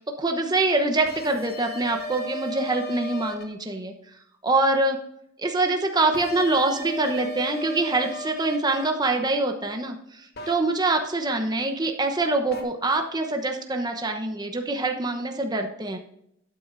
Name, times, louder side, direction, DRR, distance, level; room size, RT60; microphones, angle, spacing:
voice 1, 0.2-3.9 4.4-5.0 5.4-16.0, right 2 dB, 20° right, 4 dB, 0.9 m, -25 dB
sound 1, 1.1-3.4 6.1-8.9 10.4-10.5 12.5-12.6, equal, 50° left, 1.4 m, -35 dB
11.5 x 9.4 x 2.6 m, 0.76 s
head